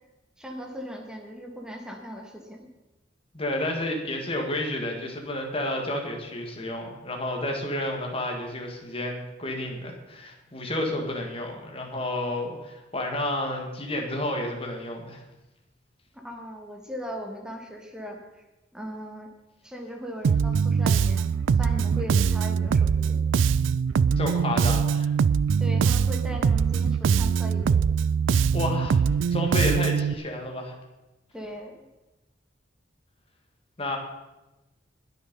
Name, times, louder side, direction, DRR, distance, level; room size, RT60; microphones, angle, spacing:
voice 1, 0.4-2.7 16.1-18.4 18.7-19.3 19.6-21.3 21.5-23.2 25.6-27.9 31.3-31.9, equal, 5° right, 2 dB, 1.8 m, -38 dB
voice 2, 3.3-15.2 24.1-25.1 28.5-29.0 29.3-30.8 33.8-34.0, left 1 dB, 30° left, 1 dB, 2.2 m, -30 dB
Bass guitar, 20.2-30.1, right 6 dB, 85° right, 0.4 m, -22 dB
20.5 x 6.9 x 5.5 m, 1.0 s
head